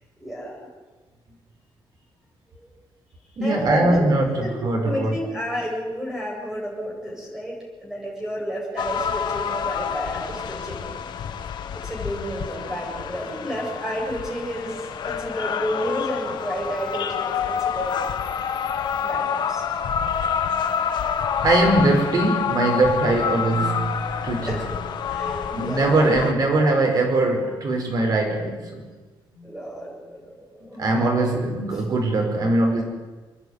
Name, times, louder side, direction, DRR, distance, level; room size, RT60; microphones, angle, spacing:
voice 1, 0.2-0.6 2.5-2.7 3.4-4.1 4.4-4.5 4.8-10.9 11.7-18.0 19.0-19.6 24.4-24.7 25.1-26.1 29.4-30.9, equal, 5° right, -2 dB, 7.9 m, -31 dB
voice 2, 3.4-5.1 21.4-24.6 25.1-25.3 25.5-28.8 29.3-29.4 30.6-32.8, right 2 dB, 50° right, 3 dB, 5.0 m, -21 dB
sound 1, 8.8-26.3, left 7 dB, 60° left, 1.4 m, -28 dB
28.0 x 10.5 x 9.6 m, 1.3 s
wide cardioid pair, 155°, 9 cm